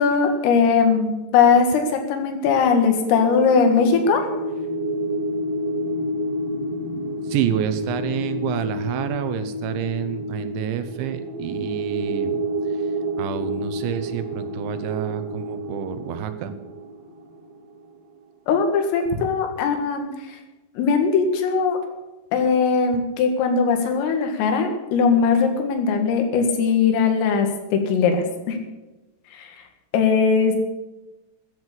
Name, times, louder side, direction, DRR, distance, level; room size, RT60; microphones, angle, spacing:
voice 1, 0.0-4.3 18.5-20.4 20.8-21.8 22.3-28.6 29.3-29.6 29.9-30.6, left 5 dB, 85° left, 5 dB, 4.5 m, -20 dB
sound 1, 2.9-17.8, right 1 dB, 55° right, 5.5 m, -29 dB
voice 2, 7.3-12.4 13.2-16.5, right 9 dB, 75° right, 10 dB, 3.1 m, -28 dB
14.5 x 9.5 x 8.1 m, 1.1 s
omnidirectional pair, 5.8 m